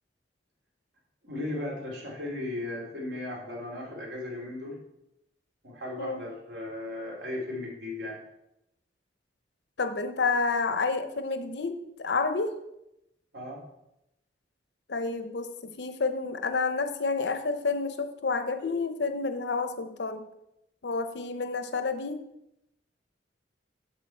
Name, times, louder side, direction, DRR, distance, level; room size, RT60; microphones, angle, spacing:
voice 1, 1.2-4.8 5.6-8.2 13.3-13.6, left 1 dB, 75° right, -2 dB, 2.6 m, -36 dB
voice 2, 9.8-12.6 14.9-20.3 20.8-22.2, left 4 dB, 70° left, 10 dB, 0.7 m, -29 dB
7.6 x 7.0 x 4.5 m, 0.86 s
head